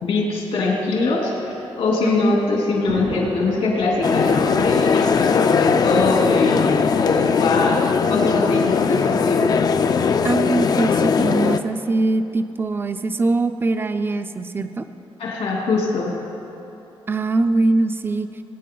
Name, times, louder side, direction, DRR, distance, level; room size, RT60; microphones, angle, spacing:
voice 1, 0.0-7.8 8.1-9.6 15.2-16.2, left 3 dB, 80° left, -3 dB, 3.0 m, -22 dB
Thunder, 1.4-6.7 7.6-7.7 7.9-8.0 9.1-9.4, right 2 dB, 80° right, 2.9 m, -37 dB
voice 2, 2.0-2.4 10.2-14.9 17.1-18.3, right 2 dB, 20° right, 9 dB, 0.5 m, -22 dB
sound 1, 4.0-11.6, left 6 dB, 40° left, 0.5 m, -19 dB
23.0 x 9.3 x 3.9 m, 3.0 s
wide cardioid pair, 150°, 10 cm